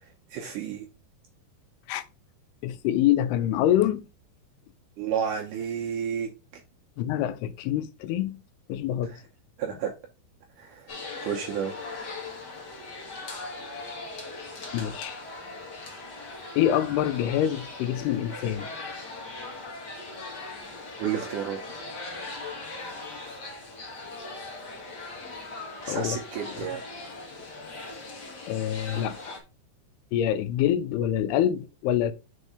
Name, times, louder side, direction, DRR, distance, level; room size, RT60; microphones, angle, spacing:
voice 1, 0.0-0.9 5.0-6.6 9.0-9.2 9.6-9.9 10.6-11.8 21.0-21.6 25.8-26.8, right 8 dB, 75° right, 1.9 m, -32 dB
voice 2, 2.6-4.0 7.0-8.4 8.7-9.1 14.7-15.2 16.6-18.7 25.9-26.2 28.5-29.4 30.1-32.1, left 11 dB, 90° left, 2.6 m, -26 dB
sound 1, 10.9-29.4, left 3 dB, 65° left, 1.0 m, -39 dB
5.4 x 4.6 x 4.8 m
omnidirectional pair, 4.5 m